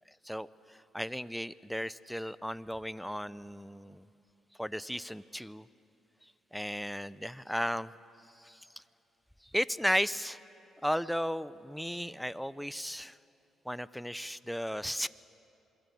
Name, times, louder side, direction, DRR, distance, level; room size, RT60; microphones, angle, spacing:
voice 1, 0.2-4.0 4.6-5.7 6.5-7.9 8.4-8.7 9.5-10.4 10.8-13.2 13.7-15.1, equal, ahead, 16 dB, 0.6 m, -35 dB
27.5 x 21.0 x 8.5 m, 2.7 s
cardioid pair, 90°, 0 cm